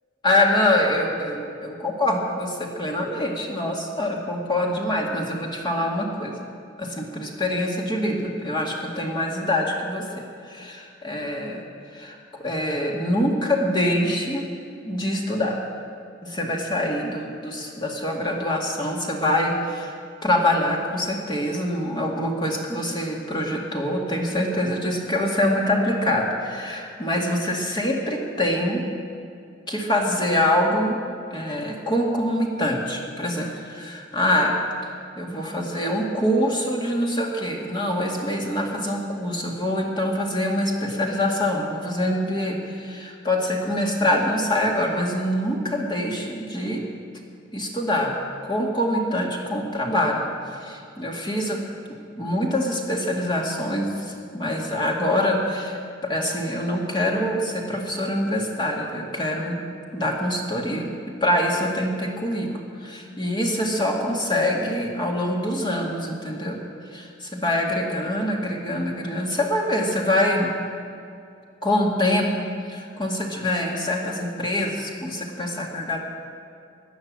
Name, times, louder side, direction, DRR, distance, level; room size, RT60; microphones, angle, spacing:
voice 1, 0.2-6.3 6.8-11.6 11.9-14.5 14.8-15.6 16.2-19.9 20.2-28.8 29.7-31.0 31.3-34.6 34.8-34.9 35.2-46.9 47.5-48.1 48.4-51.6 52.2-59.6 59.9-60.9 61.2-62.5 62.8-66.6 66.9-70.5 71.6-76.0, left 1 dB, 25° left, -1 dB, 2.2 m, -25 dB
17.5 x 11.0 x 7.6 m, 2.5 s
head